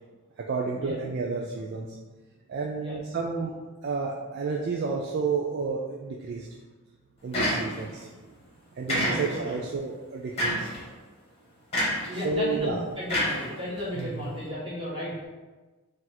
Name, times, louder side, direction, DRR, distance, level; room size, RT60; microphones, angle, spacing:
voice 1, 0.4-1.9 2.5-3.5 3.8-6.5 7.2-8.1 8.7-10.7 12.1-12.8 13.9-14.3, right 4 dB, 50° right, -1 dB, 0.3 m, -31 dB
sound 1, 7.3-8.0 8.9-9.6 10.4-10.8 11.7-12.1 13.1-14.0, equal, 30° left, 1.2 m, -27 dB
voice 2, 9.0-9.6 12.1-15.3, equal, 25° right, -8 dB, 1.4 m, -34 dB
3.9 x 2.5 x 4.3 m, 1.3 s
head